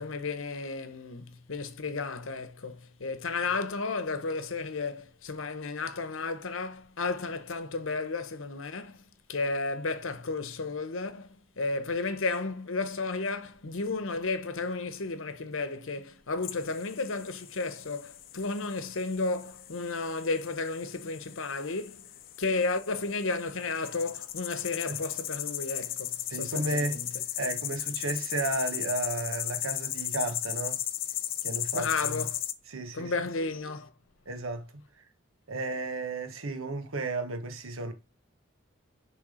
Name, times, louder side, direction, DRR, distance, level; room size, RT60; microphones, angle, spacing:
voice 1, 0.0-9.0 9.3-22.1 22.4-27.1 31.7-32.4 32.9-33.9, left 3 dB, 80° left, 1.0 m, -33 dB
sound 1, 16.4-32.5, left 12 dB, 45° left, 0.5 m, -36 dB
voice 2, 26.3-27.0 27.4-30.8 31.4-32.3 32.7-33.1 34.3-34.7 35.5-37.9, right 2 dB, 90° right, 1.3 m, -33 dB
10.0 x 3.5 x 5.0 m
head